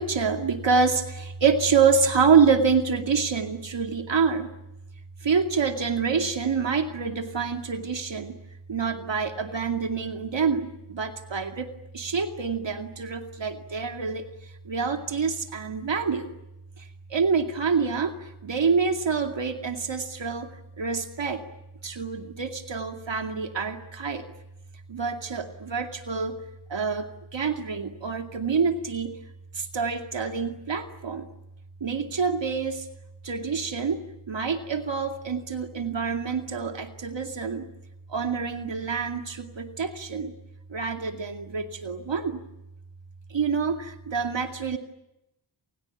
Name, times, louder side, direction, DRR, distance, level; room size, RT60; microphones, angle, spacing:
voice 1, 0.0-4.5 5.2-8.4 8.7-11.7 11.9-14.3 14.7-16.3 17.1-18.1 18.4-20.5 20.8-21.4 21.8-24.3 24.9-26.4 26.7-27.1 27.3-29.2 29.6-31.3 31.8-32.8 33.2-34.0 34.3-37.6 38.1-40.3 40.7-42.4 43.3-44.8, right 5 dB, 65° right, 5 dB, 2.5 m, -26 dB
28.5 x 28.5 x 7.2 m, 0.90 s
cardioid pair, 65°, 47 cm